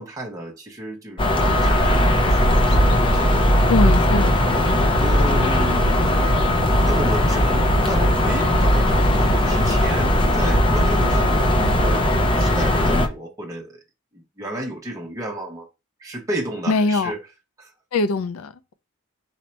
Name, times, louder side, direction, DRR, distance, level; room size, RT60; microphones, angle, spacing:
voice 1, 0.0-3.7 5.0-6.3 6.8-13.8 14.1-15.7 16.0-17.2 17.6-17.7, right 1 dB, 15° right, 0.8 m, -32 dB
sound 1, 1.2-13.1, left 1 dB, 25° left, 0.7 m, -18 dB
voice 2, 3.7-4.5 16.7-17.1 17.9-18.7, left 3 dB, 75° left, 0.4 m, -22 dB
sound 2, 5.0-11.3, right 1 dB, 50° left, 1.5 m, -34 dB
4.2 x 2.6 x 4.3 m
head